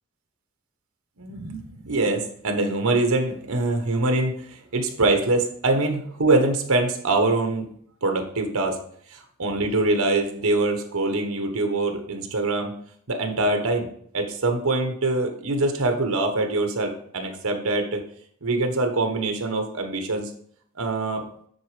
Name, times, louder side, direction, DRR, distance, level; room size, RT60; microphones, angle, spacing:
voice 1, 1.2-7.7 8.0-8.8 9.1-12.7 13.1-18.0 18.4-20.3 20.7-21.2, right 2 dB, 85° right, 5 dB, 1.3 m, -24 dB
9.4 x 4.2 x 5.1 m, 0.63 s
head